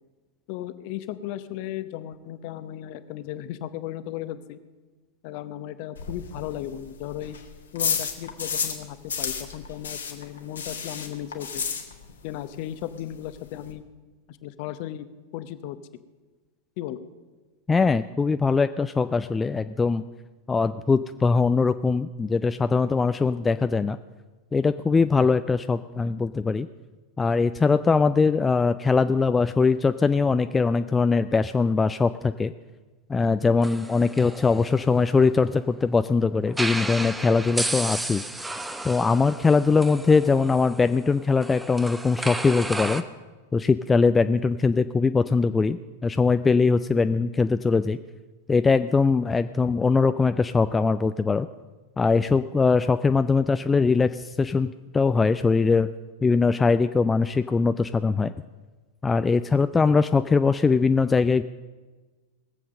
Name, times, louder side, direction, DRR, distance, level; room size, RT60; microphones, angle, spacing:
voice 1, 0.5-4.6 5.2-7.4 7.7-11.6 12.2-13.8 14.3-15.1 15.3-15.8 16.8-17.0, left 12 dB, 45° left, 13 dB, 0.8 m, -35 dB
sound 1, 5.9-8.8 9.1-12.3 12.5-12.6 13.0-13.1 13.2-13.7, left 6 dB, 70° left, 1.6 m, -31 dB
voice 2, 17.7-20.0 20.5-24.0 24.5-26.7 27.2-32.5 33.1-38.2 38.8-43.0 43.5-48.0 48.5-51.5 52.0-55.9 56.2-58.3 59.0-61.4, left 4 dB, 15° left, 11 dB, 0.3 m, -21 dB
sound 2, 33.6-35.7 36.5-43.0, right 1 dB, 5° right, 0.8 m, -33 dB
19.5 x 7.6 x 6.5 m, 1.3 s
figure-of-eight pair, 90°, 0 cm